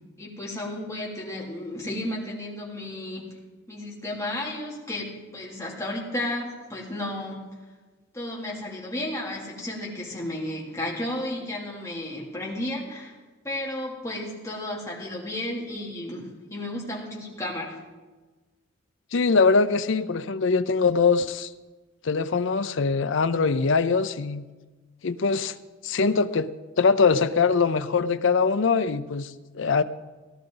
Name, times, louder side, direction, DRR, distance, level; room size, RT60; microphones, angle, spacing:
voice 1, 0.2-3.2 3.7-7.4 8.1-13.1 13.4-17.8, left 1 dB, 15° left, -4 dB, 3.0 m, -33 dB
voice 2, 19.1-21.5 22.0-24.4 25.0-25.5 25.8-26.5 26.8-29.8, left 4 dB, 65° left, 12 dB, 0.6 m, -22 dB
17.5 x 12.0 x 3.9 m, 1.3 s
head